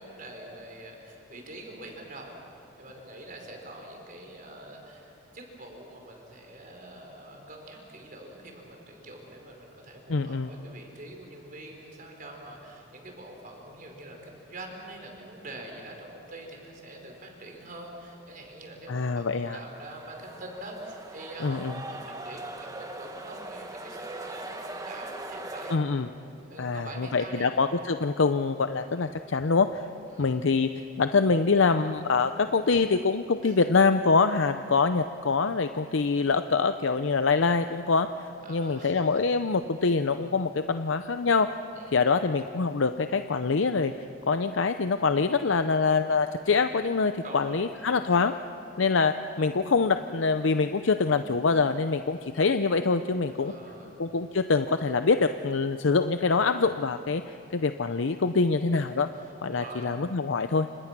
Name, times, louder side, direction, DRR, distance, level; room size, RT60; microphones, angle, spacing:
voice 1, 0.0-25.7 26.5-27.5 30.1-30.3 33.4-33.7 38.4-39.2 41.7-41.9 47.2-47.6 53.3-53.9 58.7-58.8 59.1-59.9, right 1 dB, 45° right, 1 dB, 5.1 m, -45 dB
voice 2, 10.1-10.5 18.9-19.6 21.4-21.7 25.7-26.1 26.6-29.8 30.2-30.7 31.0-38.1 38.5-41.5 41.9-43.9 44.3-48.3 48.8-53.5 54.0-59.1 59.4-60.7, left 4 dB, 70° left, 9 dB, 0.6 m, -25 dB
sound 1, 19.6-25.8, right 2 dB, 20° right, 1.6 m, -40 dB
29.5 x 27.0 x 6.1 m, 2.8 s
head